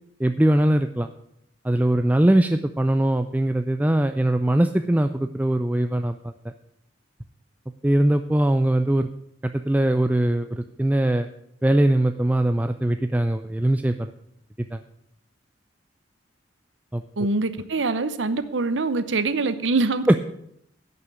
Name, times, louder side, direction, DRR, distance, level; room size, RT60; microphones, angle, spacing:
voice 1, 0.2-1.1 1.6-6.3 7.8-9.1 9.4-11.3 11.6-14.1 14.7-14.8 16.9-17.0 20.1-20.2, right 1 dB, 10° right, 8 dB, 0.4 m, -21 dB
voice 2, 17.2-20.2, right 3 dB, 80° right, 12 dB, 0.8 m, -24 dB
11.0 x 6.8 x 8.6 m, 0.74 s
head